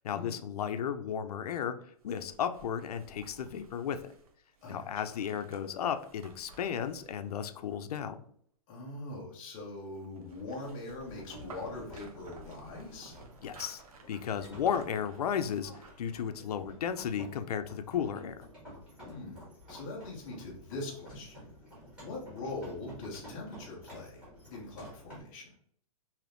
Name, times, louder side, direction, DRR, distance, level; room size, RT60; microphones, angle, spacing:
voice 1, 0.0-1.8 2.0-4.0 4.7-8.2 13.4-13.8 14.1-15.7 16.0-18.4, left 8 dB, 85° left, 10 dB, 0.4 m, -34 dB
sound 1, 2.0-8.2 9.8-16.1 16.5-16.6, right 4 dB, 70° right, 0.7 m, -56 dB
voice 2, 4.6-4.9 8.7-13.1 19.0-21.5 22.0-24.3 24.5-25.5, left 2 dB, 10° left, -3 dB, 0.3 m, -42 dB
sound 2, 11.0-25.2, equal, 5° right, 1.0 m, -51 dB
3.3 x 2.7 x 2.5 m, 0.63 s
hypercardioid pair, 175°, 19 cm